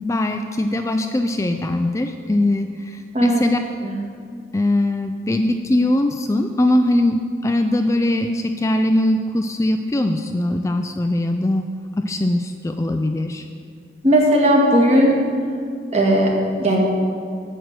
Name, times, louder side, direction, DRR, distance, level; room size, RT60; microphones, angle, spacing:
voice 1, 0.0-3.6 4.5-11.7 12.0-13.4, left 1 dB, 15° left, 6 dB, 0.3 m, -21 dB
voice 2, 14.0-15.2 15.9-16.8, equal, 35° right, -1 dB, 1.7 m, -16 dB
8.7 x 6.7 x 7.8 m, 2.2 s
head